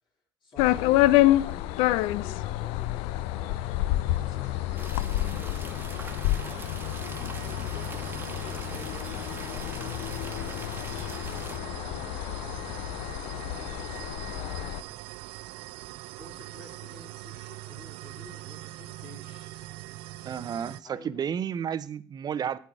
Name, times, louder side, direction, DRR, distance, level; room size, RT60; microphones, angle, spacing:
voice 1, 0.4-3.6 4.1-6.2 6.9-10.2 11.0-12.3 13.2-15.1 16.2-19.5 20.8-21.2, left 3 dB, 60° left, -8 dB, 3.7 m, -50 dB
sound 1, 0.6-14.8, left 15 dB, 80° left, 0.4 m, -28 dB
sound 2, 2.8-20.8, right 17 dB, 80° right, 0.4 m, -43 dB
sound 3, 4.8-11.6, right 3 dB, 20° right, 1.1 m, -44 dB
voice 2, 20.2-22.6, right 8 dB, 45° right, 17 dB, 0.7 m, -32 dB
8.8 x 8.3 x 4.7 m, 0.42 s
supercardioid pair, 70°, 9 cm